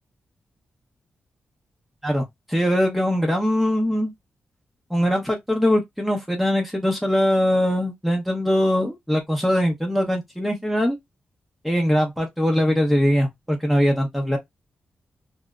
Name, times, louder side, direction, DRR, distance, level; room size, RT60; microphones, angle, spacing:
voice 1, 2.5-4.1 4.9-11.0 11.6-14.4, equal, ahead, 0.7 m, -21 dB
2.7 x 2.0 x 2.3 m
wide cardioid pair, 145°, 4 cm